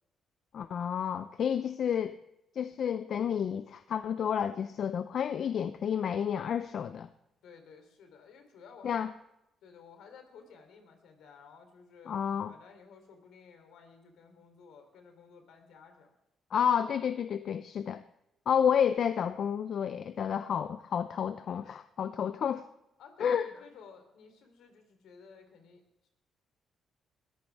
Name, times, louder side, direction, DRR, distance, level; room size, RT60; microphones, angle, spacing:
voice 1, 0.5-2.2 2.6-7.1 8.8-9.1 12.1-12.5 16.5-18.0 18.5-22.6 23.2-23.5, left 8 dB, 60° left, 12 dB, 0.5 m, -30 dB
voice 2, 7.4-9.1 9.6-12.2 12.5-16.1 23.0-25.8, left 5 dB, 80° left, 6 dB, 3.2 m, -55 dB
21.0 x 14.0 x 3.5 m, 0.88 s
cardioid pair, 90°, 0 cm